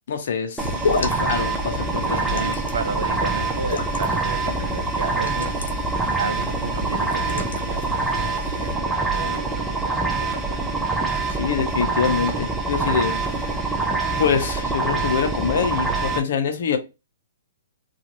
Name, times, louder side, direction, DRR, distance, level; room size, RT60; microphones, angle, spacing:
voice 1, 0.1-0.7 1.0-2.6 11.3-13.6 14.2-16.8, left 6 dB, 45° left, 0.6 m, -25 dB
sound 1, 0.6-8.8, left 3 dB, 85° left, 0.7 m, -32 dB
sound 2, 0.6-16.2, right 3 dB, 5° right, 0.4 m, -25 dB
voice 2, 2.0-5.7 6.2-10.8, right 4 dB, 70° right, 0.7 m, -33 dB
3.0 x 2.4 x 2.6 m
hypercardioid pair, 175°, 0 cm